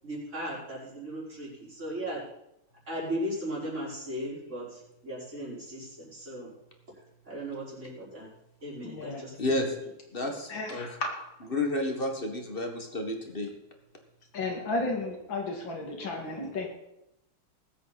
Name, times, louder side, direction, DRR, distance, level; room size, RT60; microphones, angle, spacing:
voice 1, 0.0-2.2 2.9-6.5 6.9-7.0 7.3-8.3 8.6-9.4 10.2-10.3, equal, 30° right, -7 dB, 5.5 m, -37 dB
voice 2, 8.8-9.2 10.5-11.1 14.3-16.7, left 2 dB, 60° left, 2 dB, 2.9 m, -33 dB
voice 3, 9.4-9.7 10.1-11.0 11.5-13.5, left 1 dB, 30° left, 4 dB, 1.7 m, -31 dB
20.5 x 8.3 x 4.2 m, 0.85 s
omnidirectional pair, 2.3 m